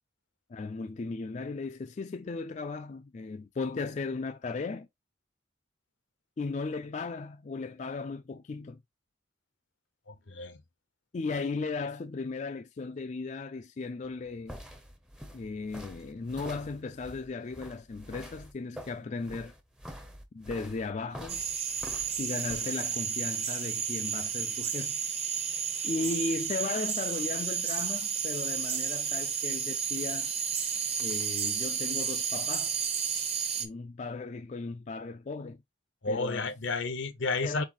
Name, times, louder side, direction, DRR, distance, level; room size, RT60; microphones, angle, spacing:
voice 1, 0.5-4.9 6.4-8.8 11.1-14.6 15.3-19.5 20.3-21.4 22.2-25.0 25.8-30.3 31.0-32.7 33.6-35.6 36.1-36.5 37.4-37.6, left 3 dB, 40° left, 0.4 m, -36 dB
voice 2, 10.1-10.6 36.0-37.6, left 3 dB, 80° left, 0.8 m, -32 dB
sound 1, 14.0-22.7, equal, 5° right, 0.6 m, -46 dB
sound 2, 21.3-33.7, right 7 dB, 35° right, 0.9 m, -32 dB
4.3 x 4.0 x 2.9 m
head